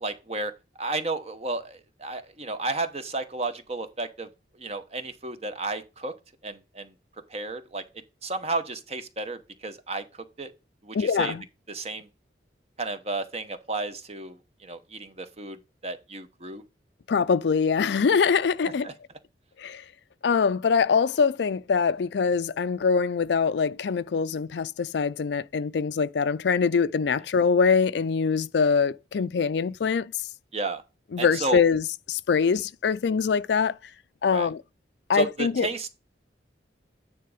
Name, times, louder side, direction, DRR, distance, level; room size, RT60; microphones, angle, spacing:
voice 1, 0.0-0.5 0.8-4.3 4.6-6.1 6.4-6.9 7.3-7.8 8.2-10.0 10.4-10.5 10.8-11.3 11.7-12.1 12.8-16.6 18.8-18.9 30.5-30.8 31.2-31.6 34.3-34.5 35.1-35.9, right 3 dB, 35° right, 1.0 m, -32 dB
voice 2, 10.9-11.4 17.1-18.9 19.6-19.8 20.2-30.1 31.1-33.8 34.2-34.6 35.1-35.7, left 5 dB, 70° left, 0.4 m, -23 dB
9.4 x 3.9 x 4.9 m
head